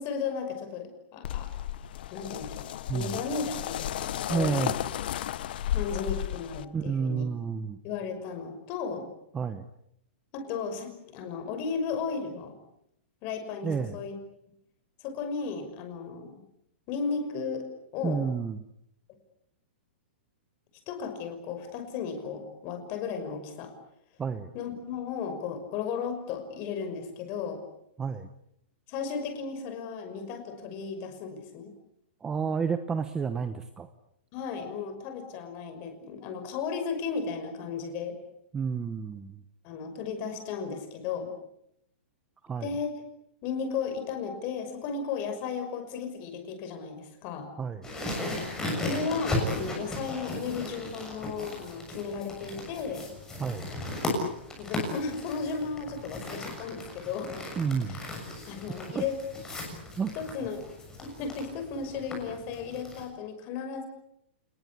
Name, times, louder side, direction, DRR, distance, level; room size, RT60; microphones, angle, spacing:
voice 1, 0.0-1.5 2.1-2.7 2.9-4.8 5.7-7.2 7.8-9.1 10.3-12.6 13.2-14.1 15.0-16.3 16.9-17.7 17.9-18.2 20.9-23.7 24.5-27.6 28.9-31.7 34.3-38.2 39.6-41.3 42.6-42.9 43.4-47.5 48.8-53.1 54.6-57.4 57.9-58.1 58.5-59.2 60.2-60.6 61.0-63.9, left 5 dB, 30° left, 7 dB, 5.8 m, -35 dB
sound 1, 1.2-6.7, left 12 dB, 55° left, 1.0 m, -33 dB
voice 2, 4.3-4.8 6.7-7.8 9.3-9.7 13.6-14.0 18.0-18.6 24.2-24.5 28.0-28.3 32.2-33.9 38.5-39.4 42.4-42.7 47.6-47.9 53.4-53.7 57.6-58.0 58.9-59.0 60.0-60.3, right 6 dB, 10° right, 10 dB, 0.9 m, -30 dB
sound 2, 47.8-63.0, left 2 dB, 10° left, 6.9 m, -36 dB
29.0 x 20.5 x 8.5 m, 0.77 s
hypercardioid pair, 170°, 6 cm